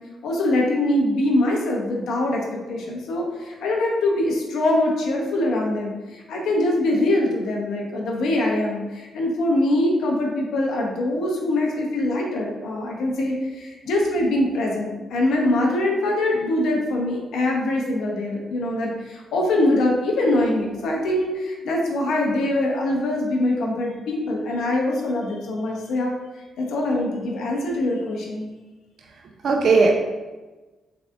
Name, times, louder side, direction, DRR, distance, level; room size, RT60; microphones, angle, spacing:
voice 1, 0.2-26.1 26.6-28.5, left 1 dB, 75° left, -1 dB, 0.6 m, -23 dB
voice 2, 29.0-29.9, right 4 dB, 60° right, 2 dB, 0.4 m, -19 dB
3.7 x 3.4 x 2.3 m, 1.2 s
supercardioid pair, 50°, 0 cm